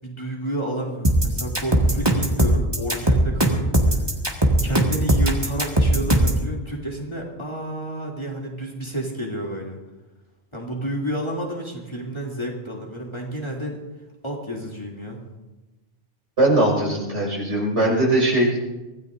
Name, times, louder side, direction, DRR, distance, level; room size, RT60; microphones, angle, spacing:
voice 1, 0.0-4.0 4.6-9.8 10.5-13.8 14.2-15.2, right 1 dB, 25° left, -2 dB, 2.9 m, -30 dB
sound 1, 1.0-6.4, right 1 dB, 20° right, 1.9 m, -19 dB
voice 2, 16.4-18.7, right 1 dB, 90° right, -3 dB, 5.8 m, -20 dB
24.5 x 17.0 x 2.6 m, 1.1 s
omnidirectional pair, 1.2 m